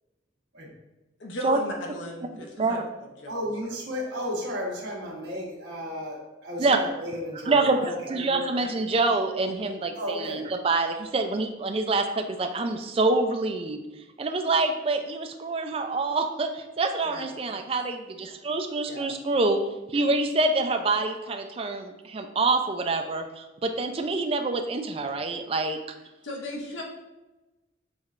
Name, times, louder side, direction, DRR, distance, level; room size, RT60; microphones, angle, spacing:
voice 1, 1.2-2.8 3.2-3.5 17.0-17.4 18.9-19.1 26.2-26.8, left 1 dB, 80° left, 0 dB, 0.7 m, -36 dB
voice 2, 2.4-2.8 6.6-6.8 7.5-13.8 14.2-19.6 19.9-25.8, right 3 dB, 30° right, 5 dB, 0.3 m, -26 dB
voice 3, 3.3-8.5 8.8-8.9 9.9-10.5, equal, 65° right, -4 dB, 1.0 m, -33 dB
6.2 x 3.2 x 2.5 m, 1.1 s
head